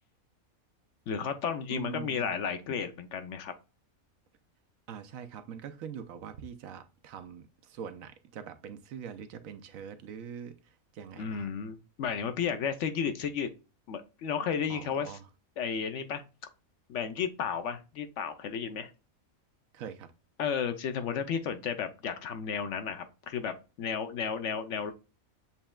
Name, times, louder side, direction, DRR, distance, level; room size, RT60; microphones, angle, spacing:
voice 1, 1.1-3.5 11.2-13.5 13.9-15.2 15.6-16.2 16.9-18.9 20.4-24.9, left 7 dB, 65° left, 0.9 m, -33 dB
voice 2, 1.7-2.4 4.9-11.5 14.7-15.3 19.7-20.1, right 8 dB, 75° right, 1.0 m, -43 dB
7.0 x 3.2 x 2.2 m
omnidirectional pair, 1.5 m